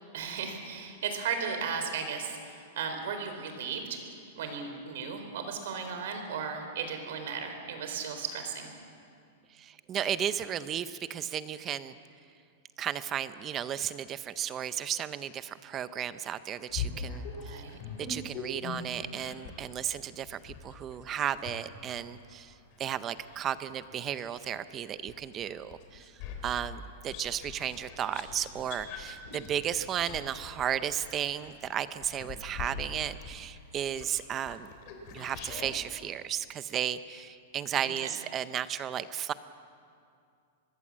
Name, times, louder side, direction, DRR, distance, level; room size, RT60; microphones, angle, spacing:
voice 1, 0.1-4.0 4.4-8.7 17.4-17.8 30.1-30.3 37.8-38.1, right 6 dB, 55° right, 6 dB, 4.2 m, -36 dB
voice 2, 9.5-12.0 12.8-17.6 18.0-22.5 22.8-26.1 26.4-34.7 35.1-39.3, right 9 dB, 15° right, 13 dB, 0.5 m, -34 dB
whisper treats, 16.7-19.7 20.2-24.6 25.1-35.7, left 5 dB, 35° left, 3.2 m, -42 dB
25.0 x 21.0 x 7.4 m, 2.4 s
supercardioid pair, 180°, 0 cm